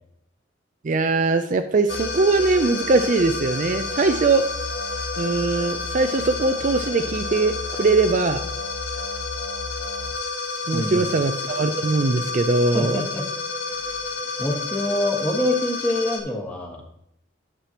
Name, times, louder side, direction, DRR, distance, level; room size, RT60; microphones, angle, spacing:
voice 1, 0.8-4.4 5.2-8.5 10.7-13.1, right 3 dB, 40° right, 8 dB, 0.4 m, -21 dB
sound 1, 1.9-16.2, left 3 dB, 60° left, 1.1 m, -30 dB
voice 2, 10.7-11.0 12.7-13.3 14.4-16.8, left 1 dB, 5° left, 0 dB, 1.4 m, -25 dB
10.0 x 7.5 x 2.9 m, 0.75 s
head